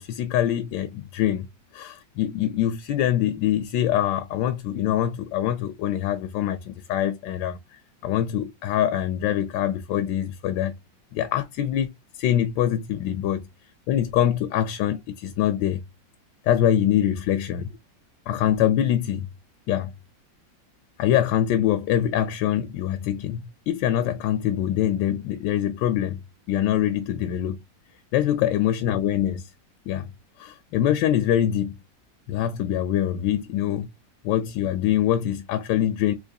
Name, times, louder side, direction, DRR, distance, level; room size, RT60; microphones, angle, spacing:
voice 1, 0.0-1.5 1.7-7.6 8.0-10.7 11.1-13.4 13.9-15.8 16.4-17.8 18.3-19.3 19.7-19.9 21.0-26.2 26.5-27.6 28.1-29.5 29.9-30.1 30.4-31.7 32.3-33.9 34.2-36.1, left 11 dB, 75° left, 1.2 m, -24 dB
3.8 x 3.0 x 2.6 m
omnidirectional pair, 2.1 m